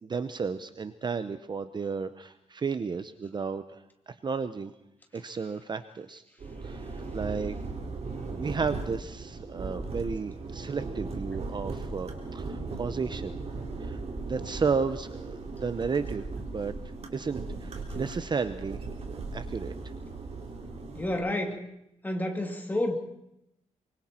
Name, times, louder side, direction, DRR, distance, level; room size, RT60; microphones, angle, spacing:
voice 1, 0.0-4.7 5.1-6.2 6.6-7.5 8.4-13.4 13.8-14.0 14.3-16.2 16.5-16.7 17.1-18.8 19.1-19.7, right 5 dB, 35° right, 11 dB, 0.8 m, -33 dB
sound 1, 6.4-21.2, right 3 dB, 55° right, 3.9 m, -37 dB
voice 2, 21.0-21.6 22.0-22.9, left 1 dB, 15° left, 3 dB, 2.7 m, -29 dB
25.0 x 24.5 x 4.4 m, 0.81 s
wide cardioid pair, 150°, 13 cm